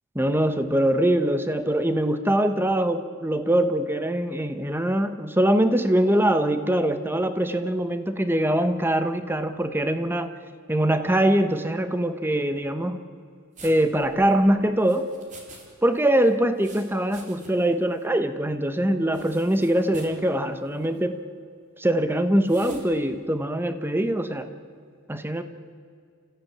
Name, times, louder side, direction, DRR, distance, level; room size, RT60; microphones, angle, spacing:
voice 1, 0.1-10.3 10.7-13.0 13.6-15.1 15.8-21.2 21.8-24.5 25.1-25.4, right 1 dB, 10° right, 9 dB, 1.0 m, -23 dB
sound 1, 13.6-15.7 15.9-17.7 18.0-18.1 19.1-20.2 20.7-21.0 22.5-22.9, right 3 dB, 35° right, 3.5 m, -48 dB
29.0 x 15.0 x 8.7 m, 2.2 s
head